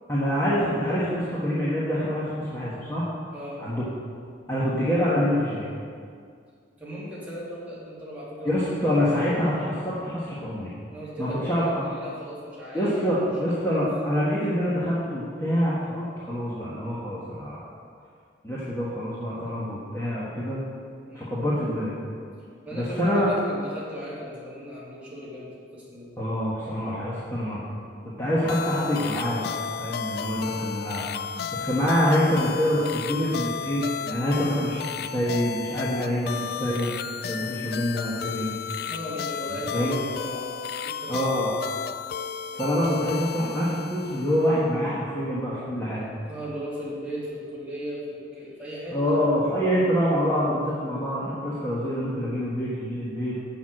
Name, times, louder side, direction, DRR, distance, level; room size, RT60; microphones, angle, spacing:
voice 1, 0.1-3.0 3.6-3.8 4.5-5.7 8.4-10.7 11.2-11.9 12.7-17.7 18.4-20.6 21.1-22.0 22.7-23.3 26.2-27.6 28.0-29.5 29.8-31.1 31.5-36.9 37.3-38.5 39.7-40.0 41.1-41.6 42.5-46.1 48.9-53.3, equal, 15° left, -9 dB, 1.4 m, -26 dB
voice 2, 3.3-3.6 6.8-8.5 10.9-13.1 13.5-13.8 21.1-21.3 22.7-26.1 38.9-41.3 46.3-49.2, equal, 5° right, -9 dB, 2.5 m, -37 dB
sound 1, 28.5-44.7, left 7 dB, 55° left, 0.3 m, -33 dB
7.1 x 5.8 x 7.6 m, 2.2 s
head